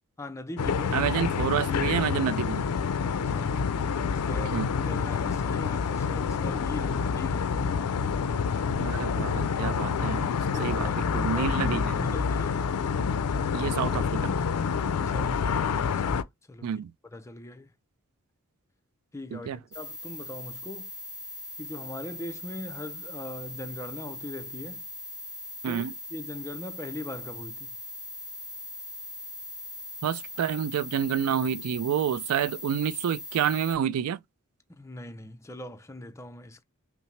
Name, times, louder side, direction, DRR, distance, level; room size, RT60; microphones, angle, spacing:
voice 1, 0.2-1.0 3.0-7.7 10.5-11.0 11.3-12.9 14.9-16.7 17.1-17.7 19.1-20.9 21.6-24.9 25.6-25.8 26.1-27.8 34.7-36.6, left 1 dB, 15° left, 0.4 m, -41 dB
sound 1, 0.6-16.2, left 6 dB, 90° left, 0.4 m, -27 dB
voice 2, 0.9-2.6 4.5-4.7 8.8-10.3 10.6-11.9 13.5-14.3 16.6-16.9 19.3-19.6 25.6-25.9 30.0-34.2, right 8 dB, 75° right, 0.3 m, -29 dB
sound 2, 19.7-33.8, left 1 dB, 5° right, 1.3 m, -40 dB
5.5 x 2.0 x 3.1 m
head